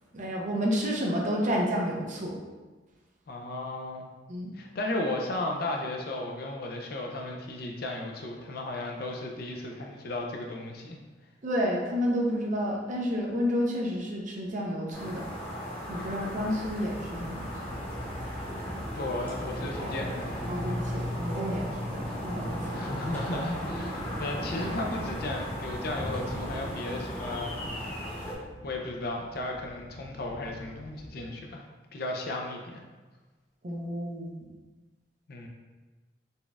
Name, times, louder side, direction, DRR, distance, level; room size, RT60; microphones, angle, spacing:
voice 1, 0.1-2.4 4.3-4.5 11.4-15.3 15.9-17.8 20.5-22.8 33.6-34.3, equal, 45° right, -1 dB, 0.6 m, -30 dB
voice 2, 3.3-4.1 4.5-11.0 16.0-16.1 18.9-20.5 22.1-22.2 22.7-27.9 28.6-31.6 31.9-32.8 35.3-35.5, left 2 dB, 55° left, 1 dB, 0.5 m, -35 dB
sound 1, 14.9-28.3, equal, 10° left, 0.9 m, -35 dB
sound 2, 16.0-31.2, equal, 20° right, 0.9 m, -48 dB
4.1 x 2.3 x 3.3 m, 1.3 s
head